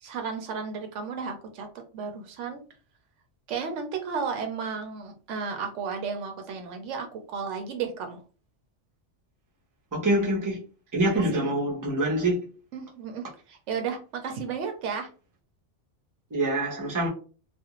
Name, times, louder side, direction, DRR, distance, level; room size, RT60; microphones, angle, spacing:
voice 1, 0.0-1.7 1.9-2.6 3.5-8.2 11.2-11.5 12.7-15.1, right 6 dB, 80° right, 0.9 m, -33 dB
voice 2, 9.9-10.6 10.9-12.4 16.3-17.1, right 1 dB, 20° right, 0.7 m, -25 dB
2.4 x 2.4 x 2.9 m
omnidirectional pair, 1.2 m